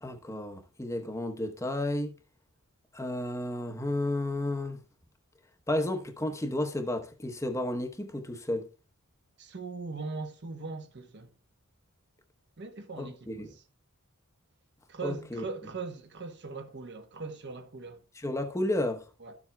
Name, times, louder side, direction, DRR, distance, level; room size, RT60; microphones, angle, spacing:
voice 1, 0.0-2.1 2.9-4.8 5.7-8.7 13.0-13.5 15.0-15.4 18.2-19.0, left 1 dB, 15° left, 0.9 m, -32 dB
voice 2, 9.4-11.3 12.6-13.6 14.9-18.0 19.2-19.4, right 4 dB, 50° right, 1.0 m, -40 dB
13.0 x 7.2 x 2.3 m
head